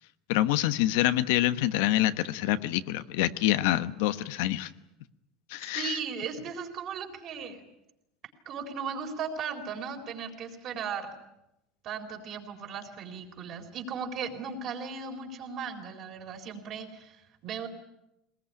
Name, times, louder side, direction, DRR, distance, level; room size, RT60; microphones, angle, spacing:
voice 1, 0.3-4.7 5.5-6.0, left 14 dB, 80° left, 11 dB, 1.2 m, -26 dB
voice 2, 5.6-7.6 8.5-11.1 11.8-17.7, right 6 dB, 40° right, 4 dB, 4.2 m, -37 dB
22.5 x 20.5 x 9.9 m, 0.89 s
cardioid pair, 150°, 0 cm